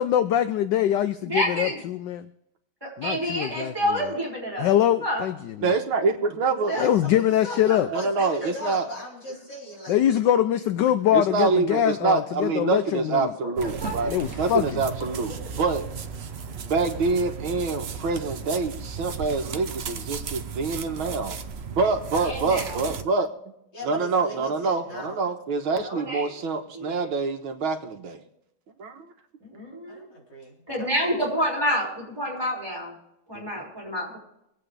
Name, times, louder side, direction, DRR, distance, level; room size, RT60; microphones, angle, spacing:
voice 1, 0.0-2.3 3.0-3.7 4.6-5.5 6.8-7.9 9.9-13.3 14.0-14.8, left 11 dB, 70° left, 11 dB, 1.2 m, -23 dB
voice 2, 1.2-1.8 2.8-4.7 5.0-5.2 6.7-6.9 7.7-7.8 13.4-13.5 13.8-14.0 15.6-15.7 22.2-22.8 25.7-26.3 26.7-27.1 29.4-30.1 30.7-32.9 33.3-34.2, equal, 10° right, -4 dB, 5.7 m, -28 dB
voice 3, 5.6-6.7 7.9-8.9 11.1-15.9 16.6-21.4 21.7-23.3 23.8-28.2 28.8-29.1 33.3-33.6, right 4 dB, 80° right, 5 dB, 2.1 m, -26 dB
voice 4, 6.6-10.2 16.9-17.1 21.8-22.7 23.7-25.3 29.9-30.9, equal, 55° left, -4 dB, 4.9 m, -38 dB
sound 1, 13.6-23.0, right 6 dB, 60° right, 0.6 m, -35 dB
24.5 x 8.5 x 3.4 m, 0.81 s
omnidirectional pair, 2.2 m